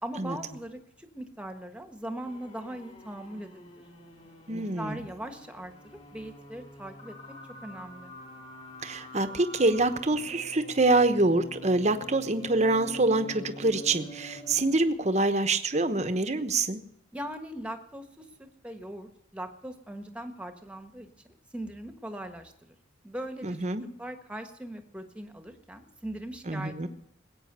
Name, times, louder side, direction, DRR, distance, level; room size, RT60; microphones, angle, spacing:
voice 1, 0.0-3.8 4.5-7.4 7.6-8.1 17.1-22.7 23.0-23.6 24.0-26.9, right 1 dB, 5° right, 7 dB, 1.3 m, -40 dB
sound 1, 2.2-14.9, equal, 35° left, 3.7 m, -46 dB
voice 2, 4.5-5.0 8.8-16.8 23.4-23.8 26.5-26.9, right 2 dB, 35° right, 10 dB, 1.0 m, -25 dB
20.0 x 9.0 x 6.8 m, 0.77 s
head